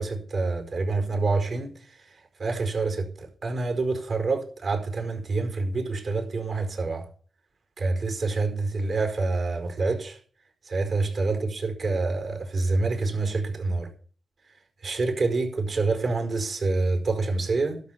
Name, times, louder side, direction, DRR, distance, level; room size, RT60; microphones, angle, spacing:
voice 1, 0.0-1.7 2.4-7.0 7.8-10.2 10.7-13.9 14.8-17.8, right 3 dB, 65° right, 4.6 m, -27 dB
12.0 x 5.8 x 9.2 m
cardioid pair, 50°, 0 cm